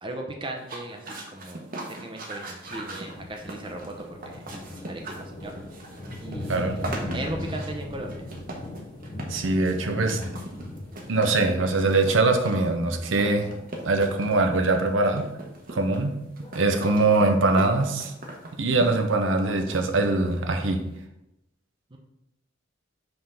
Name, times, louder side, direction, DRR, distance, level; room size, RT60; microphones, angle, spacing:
voice 1, 0.0-4.4 4.8-5.5 6.2-8.3 21.9-22.0, right 1 dB, 25° right, 2 dB, 0.7 m, -38 dB
sound 1, 0.6-20.5, right 2 dB, 45° right, 1.1 m, -40 dB
sound 2, 2.6-21.0, left 1 dB, 30° left, 0.8 m, -40 dB
voice 2, 9.3-10.2 11.1-13.5 13.8-15.3 15.7-16.2 16.5-18.1 18.5-20.8, right 2 dB, 80° right, 5 dB, 0.8 m, -22 dB
5.5 x 3.7 x 5.7 m, 0.88 s
head